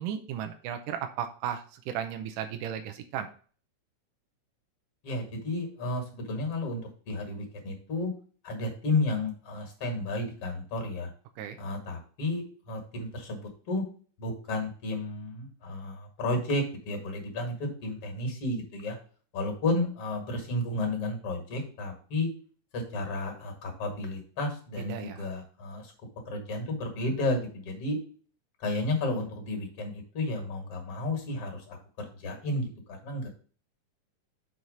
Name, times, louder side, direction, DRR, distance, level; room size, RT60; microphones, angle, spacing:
voice 1, 0.0-3.3 11.4-11.6 24.9-25.3, right 9 dB, 80° right, 6 dB, 2.3 m, -35 dB
voice 2, 5.0-8.1 8.4-11.1 11.6-13.8 14.2-19.0 19.3-22.3 22.7-25.9 26.3-28.0 28.6-33.3, left 2 dB, 50° left, 3 dB, 2.6 m, -32 dB
6.4 x 4.2 x 5.1 m, 0.41 s
omnidirectional pair, 3.8 m